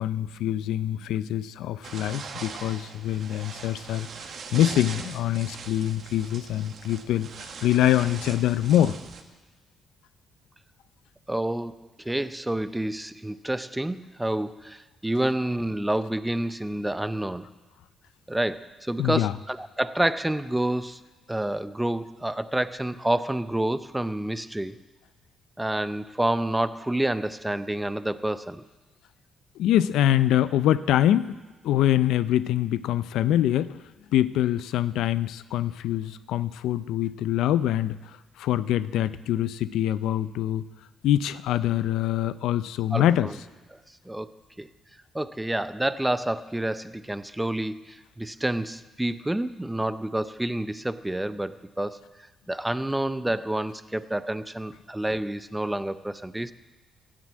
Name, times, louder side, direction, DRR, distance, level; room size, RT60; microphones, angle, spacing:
voice 1, 0.0-8.9 19.0-19.3 29.6-31.4 31.6-33.8 34.1-38.0 38.4-40.7 41.0-43.3, left 12 dB, 85° left, 15 dB, 0.4 m, -24 dB
sound 1, 1.8-9.2, right 5 dB, 55° right, 1.3 m, -41 dB
voice 2, 11.3-11.7 12.0-17.5 18.3-21.0 21.3-24.8 25.6-28.6 42.9-43.4 43.7-43.8 44.1-44.3 44.6-44.7 45.1-52.0 52.5-56.5, right 1 dB, 10° right, 14 dB, 0.6 m, -28 dB
15.5 x 7.6 x 8.4 m, 1.2 s
cardioid pair, 90°, 0 cm